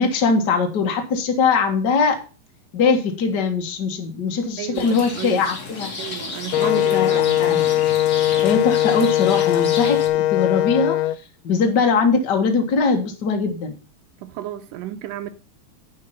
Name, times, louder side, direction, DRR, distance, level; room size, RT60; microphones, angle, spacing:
voice 1, 0.0-2.2 2.7-5.9 6.6-7.6 8.4-11.1 11.4-13.7, left 5 dB, 65° left, 1.0 m, -21 dB
voice 2, 4.6-5.5 6.0-7.7 14.2-15.3, right 13 dB, 75° right, 2.1 m, -33 dB
Rain, 4.7-10.1, left 4 dB, 40° left, 1.3 m, -33 dB
Wind instrument woodwind instrument, 6.5-11.2, left 13 dB, 90° left, 2.5 m, -20 dB
10.0 x 5.7 x 5.6 m
omnidirectional pair, 4.4 m